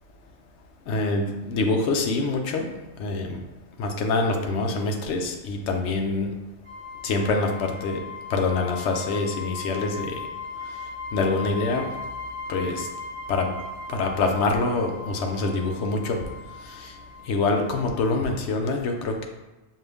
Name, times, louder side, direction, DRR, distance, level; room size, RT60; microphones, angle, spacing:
voice 1, 0.9-2.7 3.0-3.4 3.8-6.3 7.0-8.0 8.3-10.2 11.1-11.9 12.5-12.9 13.3-13.5 13.9-16.2 16.6-16.9 17.3-19.2, left 3 dB, 65° left, 3 dB, 0.9 m, -25 dB
sound 1, 6.6-18.1, left 3 dB, 45° right, 1.0 m, -38 dB
5.6 x 2.4 x 3.4 m, 1.1 s
omnidirectional pair, 1.3 m